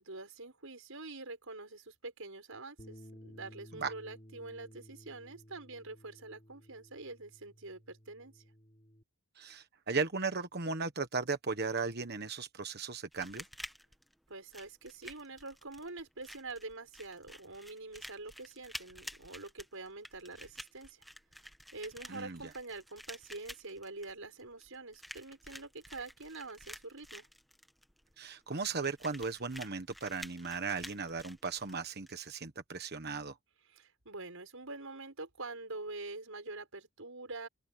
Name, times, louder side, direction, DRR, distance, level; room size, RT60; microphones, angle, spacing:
voice 1, 0.0-8.4 14.3-21.0 21.7-27.3 33.7-37.5, right 3 dB, 70° right, 5.9 m, -46 dB
Bass guitar, 2.8-9.0, equal, 30° left, 6.9 m, -56 dB
voice 2, 9.4-13.4 22.1-22.5 28.2-33.4, right 4 dB, 50° right, 1.3 m, -36 dB
sound 1, 13.1-32.1, equal, ahead, 1.3 m, -51 dB
open air
head